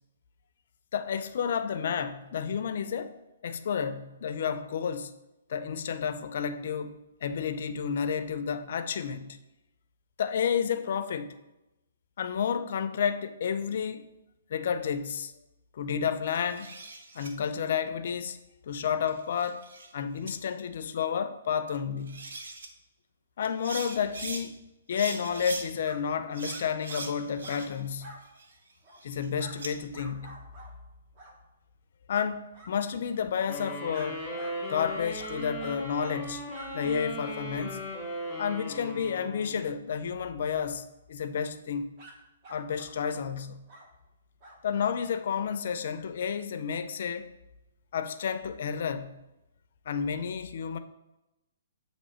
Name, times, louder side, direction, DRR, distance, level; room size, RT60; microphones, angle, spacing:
voice 1, 0.9-5.1 5.5-9.4 10.2-11.3 12.2-14.1 14.5-15.3 15.7-16.7 17.1-18.4 18.7-19.7 19.9-22.3 23.4-24.5 24.9-28.1 29.0-30.4 32.1-34.2 34.7-36.4 36.7-37.8 38.4-41.9 42.5-43.6 44.6-47.3 47.9-49.2 49.9-50.8, left 7 dB, 55° left, 0.4 m, -31 dB
sound 1, 16.3-17.3 18.9-19.9 20.3-20.4 21.7-21.8 22.1-22.7 23.4-24.4 24.9-25.7 26.3-27.9 28.2-29.7, right 3 dB, 75° right, 0.9 m, -41 dB
sound 2, 25.8-26.0 26.4-26.6 26.9-27.1 27.4-27.6 28.0-28.2 28.8-29.0 29.4-29.6 29.9-30.7 31.2-31.3 32.1-32.3 32.5-32.7 33.9-34.1 34.4-34.5 35.2-35.8 36.1-36.3 36.5-36.7 42.0-42.1 42.4-43.2 43.7-43.9 44.4-44.6, right 1 dB, 30° right, 1.0 m, -48 dB
sound 3, 33.5-39.9, equal, 5° right, 1.9 m, -38 dB
8.2 x 3.0 x 4.3 m
hypercardioid pair, 155°, 0 cm